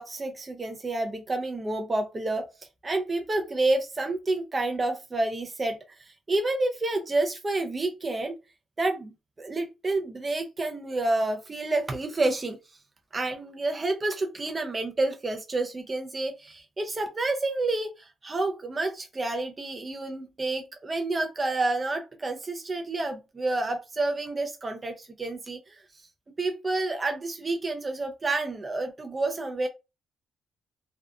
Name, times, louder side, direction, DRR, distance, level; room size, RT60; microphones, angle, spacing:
voice 1, 0.0-2.5 2.8-8.4 8.8-12.6 13.1-25.8 26.4-29.7, right 2 dB, 30° right, 0.4 m, -29 dB
2.6 x 2.2 x 2.3 m
cardioid pair, 85°, 0 cm